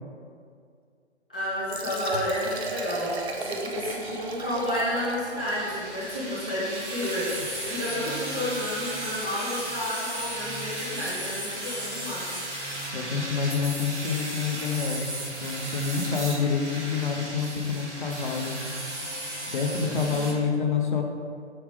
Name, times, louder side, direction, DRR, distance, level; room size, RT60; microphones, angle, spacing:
voice 1, 1.3-7.2 7.6-12.2 20.1-20.3, left 1 dB, 10° left, -12 dB, 0.4 m, -31 dB
Liquid, 1.5-8.4, right 2 dB, 65° right, 0.8 m, -37 dB
sound 1, 5.4-20.3, right 1 dB, 85° right, 1.5 m, -35 dB
voice 2, 12.9-15.1 15.4-18.7 19.5-21.0, left 5 dB, 45° left, 3 dB, 0.7 m, -27 dB
5.7 x 4.9 x 3.4 m, 2.2 s
figure-of-eight pair, 135°, 34 cm